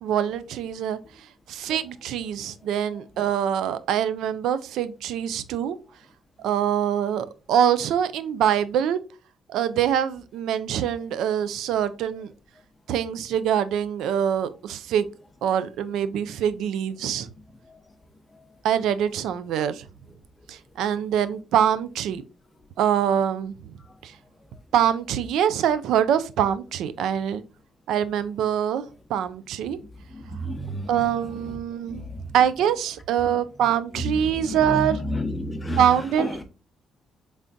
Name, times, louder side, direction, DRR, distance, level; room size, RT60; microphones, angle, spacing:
voice 1, 0.0-1.0 1.5-5.8 6.4-9.0 9.5-12.3 12.9-15.1 15.4-17.3 18.6-19.8 20.5-22.2 22.8-23.7 24.0-24.1 24.7-27.4 27.9-29.8 30.9-32.0 32.3-35.0 35.8-36.4, right 9 dB, 85° right, 0.3 m, -24 dB
voice 2, 30.1-30.9 31.9-32.2 34.0-35.9 36.2-36.4, equal, 20° left, 0.7 m, -30 dB
3.8 x 3.3 x 2.5 m
cardioid pair, 90°, 0 cm